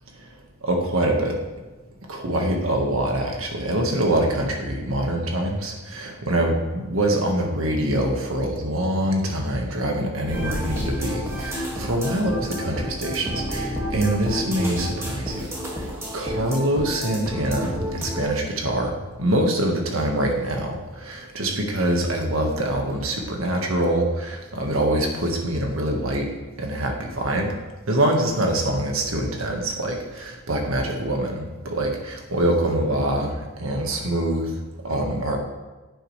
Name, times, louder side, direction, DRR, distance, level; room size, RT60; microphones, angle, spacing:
voice 1, 0.6-1.4 2.1-15.9 16.1-26.3 26.6-27.5 27.9-34.5 34.8-35.4, right 1 dB, 80° right, 2 dB, 1.6 m, -24 dB
sound 1, 10.3-18.3, equal, 15° right, 2.0 m, -30 dB
10.5 x 8.8 x 3.3 m, 1.2 s
head